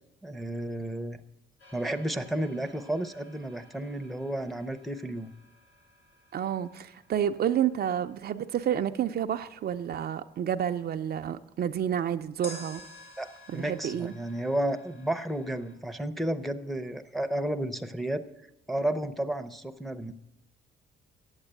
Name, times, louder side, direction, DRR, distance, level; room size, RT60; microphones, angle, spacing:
voice 1, 0.2-1.2 1.7-5.3 13.2-18.2 18.7-20.1, right 1 dB, ahead, 0.7 m, -32 dB
sound 1, 1.6-9.6 12.4-15.8, left 2 dB, 85° left, 3.0 m, -52 dB
voice 2, 6.3-12.8 13.5-14.1, right 9 dB, 50° right, 0.5 m, -29 dB
8.2 x 8.1 x 8.8 m
cardioid pair, 90°, 20 cm